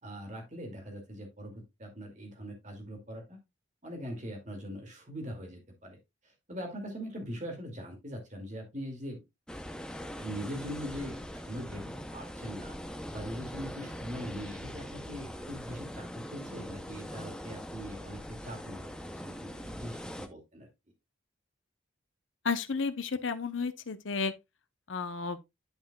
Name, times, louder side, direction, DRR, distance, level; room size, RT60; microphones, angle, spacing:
voice 1, 0.0-3.4 3.8-6.0 6.5-9.2 10.2-12.8 13.1-20.7, equal, 35° right, 2.4 m, -41 dB
sound 1, 9.5-20.3, equal, 5° left, 0.6 m, -42 dB
voice 2, 22.4-24.3 24.9-25.4, left 4 dB, 80° left, 0.8 m, -32 dB
10.5 x 5.7 x 2.3 m
head